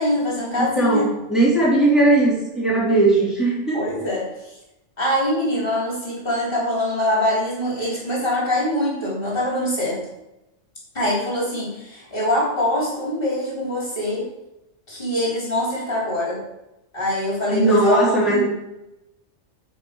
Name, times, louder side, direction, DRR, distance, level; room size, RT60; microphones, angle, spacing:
voice 1, 0.0-1.1 2.8-2.9 3.7-4.3 5.0-10.0 10.9-14.2 14.9-16.4 16.9-18.4, left 1 dB, 45° left, -5 dB, 3.5 m, -23 dB
voice 2, 0.6-3.8 17.5-18.4, right 2 dB, ahead, -7 dB, 3.5 m, -18 dB
12.0 x 5.3 x 5.0 m, 0.92 s
omnidirectional pair, 1.3 m